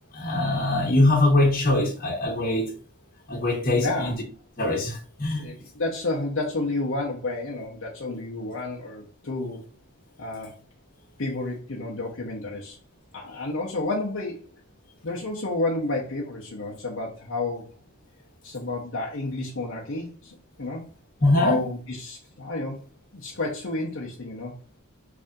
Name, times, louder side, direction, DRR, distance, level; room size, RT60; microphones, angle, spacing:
voice 1, 0.1-2.7 3.3-4.1 4.6-5.5 21.2-21.6, left 2 dB, 40° left, 1.1 m, -22 dB
voice 2, 3.8-4.1 5.4-9.7 10.2-10.5 11.2-12.8 13.1-14.5 15.0-17.8 18.4-20.8 21.4-22.8 23.1-24.5, left 2 dB, 60° left, 0.8 m, -30 dB
3.4 x 2.6 x 3.6 m
head